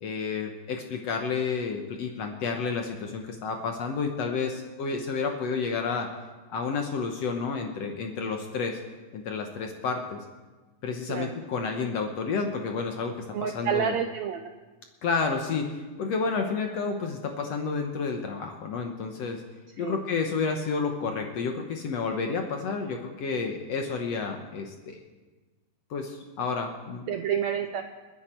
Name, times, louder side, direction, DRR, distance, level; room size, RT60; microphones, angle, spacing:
voice 1, 0.0-6.1 6.5-8.8 9.1-10.2 10.8-13.1 13.4-14.0 15.0-19.4 19.8-25.0 25.9-27.0, left 5 dB, 60° left, 3 dB, 1.9 m, -30 dB
voice 2, 13.3-14.5 19.8-20.0 27.1-27.8, right 8 dB, 80° right, 6 dB, 1.6 m, -29 dB
29.5 x 10.0 x 4.5 m, 1.3 s
omnidirectional pair, 4.0 m